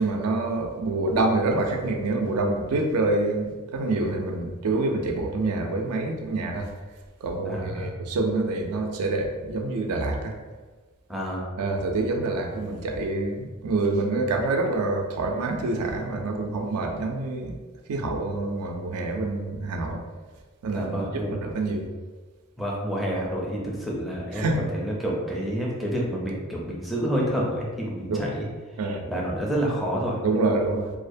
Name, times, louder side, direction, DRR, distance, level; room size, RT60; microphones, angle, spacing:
voice 1, 0.0-6.7 7.2-10.4 11.6-17.6 17.9-20.0 20.6-21.9 24.4-24.6 28.1-28.3 28.8-29.0 30.2-30.9, right 2 dB, 75° right, 3 dB, 0.4 m, -26 dB
voice 2, 7.4-7.9 11.1-11.5 20.7-21.4 22.6-28.5 29.1-30.2, equal, ahead, -4 dB, 0.4 m, -28 dB
2.4 x 2.0 x 2.5 m, 1.4 s
head